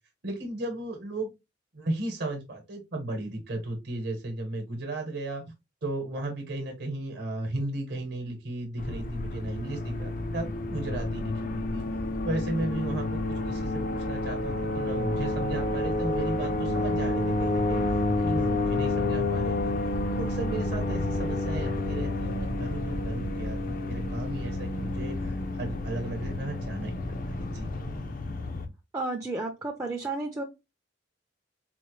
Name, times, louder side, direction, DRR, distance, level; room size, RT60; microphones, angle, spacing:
voice 1, 0.2-1.3 1.7-5.4 5.8-11.9 12.2-13.2 13.5-19.8 20.2-27.0 27.3-27.7, right 2 dB, 55° right, 2 dB, 1.0 m, -35 dB
sound 1, 8.8-28.7, left 2 dB, 45° left, 0.5 m, -30 dB
voice 2, 28.9-30.4, right 2 dB, 15° right, 1 dB, 0.4 m, -32 dB
4.2 x 2.1 x 2.9 m, 0.23 s
head